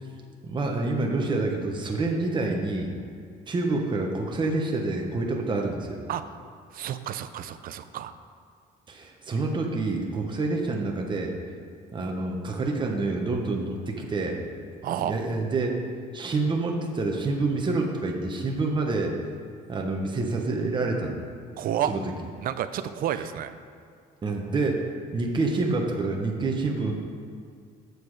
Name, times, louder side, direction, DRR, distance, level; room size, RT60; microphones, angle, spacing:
voice 1, 0.4-2.9 3.5-6.0 8.9-11.3 11.9-14.4 15.0-15.8 16.1-19.1 19.7-21.2 21.9-22.0 24.2-24.8 25.1-26.9, right 3 dB, 30° right, 1 dB, 1.1 m, -27 dB
voice 2, 6.7-8.1 14.8-15.1 21.6-21.9 22.4-23.5, right 10 dB, 60° right, 11 dB, 0.5 m, -30 dB
8.1 x 6.8 x 4.9 m, 2.3 s
cardioid pair, 110°, 17 cm